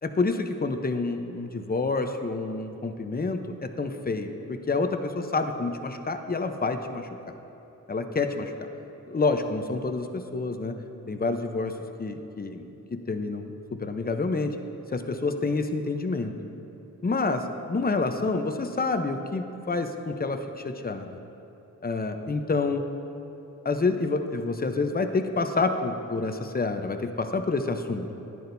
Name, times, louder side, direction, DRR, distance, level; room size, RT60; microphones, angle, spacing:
voice 1, 0.0-7.1 7.9-8.5 9.1-10.8 11.1-14.6 14.9-16.3 17.0-21.1 21.8-22.8 23.6-28.1, left 3 dB, 25° left, 7 dB, 0.8 m, -28 dB
14.0 x 10.0 x 2.7 m, 3.0 s
cardioid pair, 60°, 34 cm